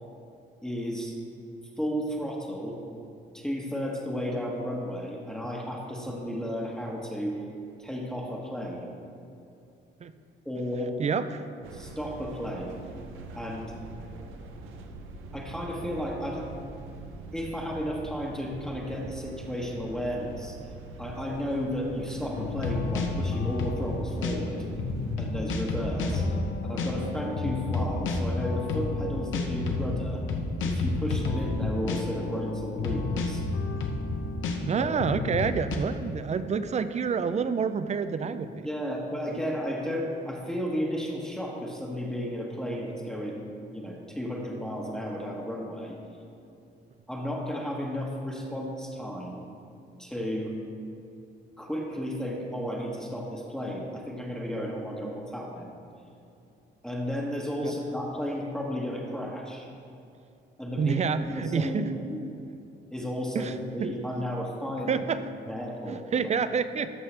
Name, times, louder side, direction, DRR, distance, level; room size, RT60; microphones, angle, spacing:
voice 1, 0.6-1.1 1.8-2.8 3.3-7.4 7.8-8.9 10.4-11.0 11.7-12.9 13.3-13.7 15.3-16.5 17.3-20.6 21.0-24.6 25.2-26.3 26.6-30.2 30.6-33.4 38.6-46.0 47.1-49.4 50.0-50.6 51.6-55.7 56.8-59.7 60.6-62.2 62.9-65.0 65.4-66.0, equal, 5° left, -3 dB, 1.1 m, -33 dB
voice 2, 11.0-11.4 34.6-38.7 57.6-57.7 60.8-61.9 63.3-63.5 63.8-63.9 64.9-65.2 65.9-66.9, right 6 dB, 35° right, 12 dB, 0.4 m, -28 dB
sound 1, 11.6-25.2, right 3 dB, 85° right, 0.7 m, -43 dB
sound 2, 22.3-35.8, left 3 dB, 75° left, 0.8 m, -30 dB
13.0 x 5.6 x 3.3 m, 2.7 s
cardioid pair, 90°, 20 cm